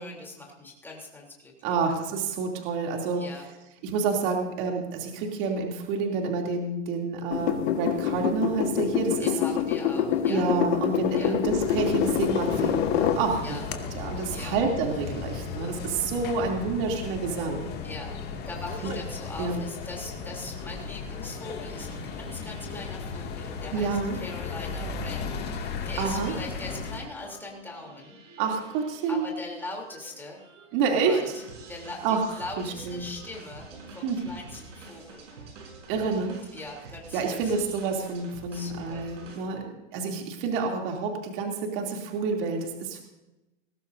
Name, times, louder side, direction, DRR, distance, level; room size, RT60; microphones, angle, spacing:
voice 1, 0.0-1.7 3.1-3.4 9.2-10.4 11.1-11.4 13.4-13.6 14.3-14.6 15.6-15.8 17.8-18.1 18.4-28.2 29.1-30.4 30.8-35.5 36.0-36.2 36.5-37.5 38.5-39.0, left 2 dB, 5° left, -2 dB, 3.4 m, -41 dB
voice 2, 1.6-3.3 3.8-9.3 10.3-13.6 13.9-17.7 18.8-18.9 19.4-19.6 23.7-24.2 26.0-26.3 28.4-29.3 30.7-31.3 32.0-33.1 34.0-34.2 35.9-36.4 37.1-43.0, right 4 dB, 45° right, 1 dB, 3.0 m, -28 dB
sound 1, 7.3-13.2 13.7-13.8, left 9 dB, 60° left, 1.6 m, -26 dB
sound 2, 11.4-27.0, left 5 dB, 25° left, 2.3 m, -36 dB
sound 3, 20.6-39.4, right 3 dB, 75° right, 6.5 m, -49 dB
20.0 x 16.5 x 2.7 m, 0.97 s
hypercardioid pair, 140°, 38 cm